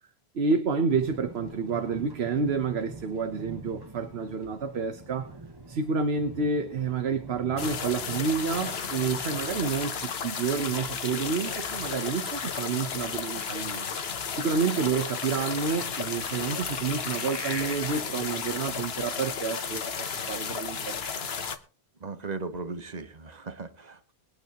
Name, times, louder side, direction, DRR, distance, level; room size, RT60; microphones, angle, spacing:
voice 1, 0.3-5.4 5.7-14.0 14.3-21.3, right 5 dB, 80° right, 8 dB, 1.2 m, -29 dB
sound 1, 0.9-9.5, right 3 dB, 25° right, 1.2 m, -45 dB
sound 2, 7.6-21.6, left 6 dB, 75° left, 1.3 m, -33 dB
sound 3, 8.7-17.8, left 2 dB, 25° left, 1.2 m, -43 dB
voice 2, 22.0-24.1, right 4 dB, 40° right, 9 dB, 1.2 m, -37 dB
23.0 x 9.0 x 2.9 m, 0.38 s
omnidirectional pair, 1.1 m